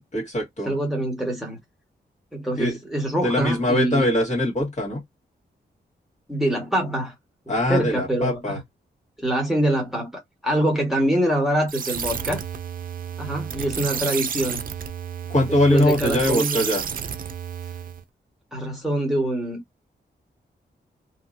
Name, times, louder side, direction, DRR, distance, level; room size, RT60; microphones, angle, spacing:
voice 1, 0.1-0.7 2.6-2.8 3.2-5.0 7.5-8.6 15.3-16.8, left 1 dB, 40° left, 1.6 m, -22 dB
voice 2, 0.6-1.6 2.3-4.0 6.3-7.1 7.5-8.6 9.2-12.4 13.2-14.6 15.7-16.6 18.5-19.6, right 1 dB, ahead, 1.3 m, -24 dB
sound 1, 11.7-18.0, right 7 dB, 55° right, 0.4 m, -31 dB
2.8 x 2.7 x 2.5 m
wide cardioid pair, 125°, 18 cm